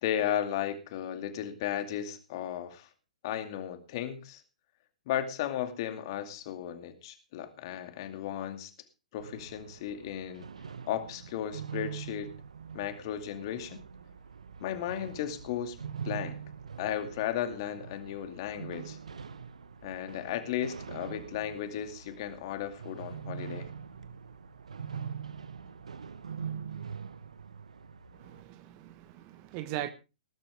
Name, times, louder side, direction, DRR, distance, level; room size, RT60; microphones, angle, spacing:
voice 1, 0.0-2.9 3.2-4.4 5.1-8.7 9.1-10.5 10.9-12.3 12.7-13.8 14.6-15.8 16.0-16.4 16.8-19.0 19.8-23.7, left 10 dB, 40° left, 2.4 m, -35 dB
sound 1, 9.2-28.4, right 7 dB, 65° right, 1.1 m, -43 dB
voice 2, 28.1-29.9, right 13 dB, 35° right, 1.3 m, -39 dB
19.5 x 11.5 x 3.5 m
figure-of-eight pair, 115°, 4 cm